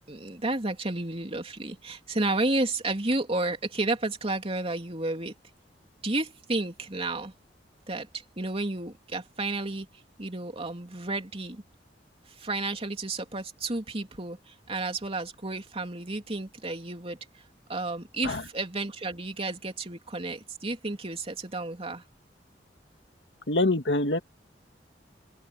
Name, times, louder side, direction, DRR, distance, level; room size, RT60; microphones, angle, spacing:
voice 1, 0.1-5.3 6.0-7.3 7.9-9.9 10.2-11.6 12.4-17.2 17.7-22.0, right 2 dB, 35° right, 3.1 m, -31 dB
voice 2, 23.5-24.2, left 2 dB, 75° left, 2.2 m, -25 dB
open air
head